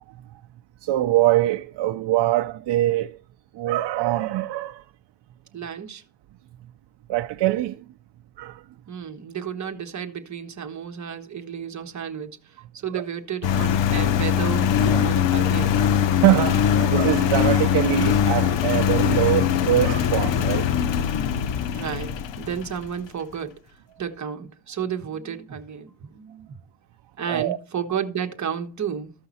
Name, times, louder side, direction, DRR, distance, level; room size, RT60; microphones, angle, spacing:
voice 1, 0.8-3.2 3.5-4.8 7.1-7.8 8.4-8.6 12.9-13.0 14.9-15.0 16.2-20.7 27.3-27.6, right 14 dB, 65° right, 0.6 m, -23 dB
voice 2, 5.5-6.0 8.9-15.8 21.7-23.6 24.0-26.6 27.2-29.1, right 8 dB, 40° right, 1.2 m, -32 dB
Engine, 13.4-22.9, left 9 dB, 70° left, 0.9 m, -21 dB
14.0 x 5.7 x 4.1 m
cardioid pair, 120°, 45 cm